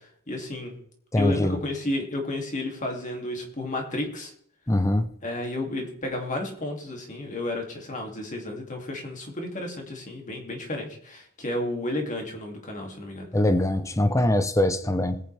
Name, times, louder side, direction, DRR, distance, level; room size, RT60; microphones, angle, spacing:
voice 1, 0.3-0.8 1.2-4.3 5.2-13.3, left 1 dB, 35° left, 2.5 m, -32 dB
voice 2, 1.1-1.6 4.7-5.1 13.3-15.2, left 1 dB, 15° left, 0.7 m, -22 dB
20.5 x 9.0 x 3.4 m
head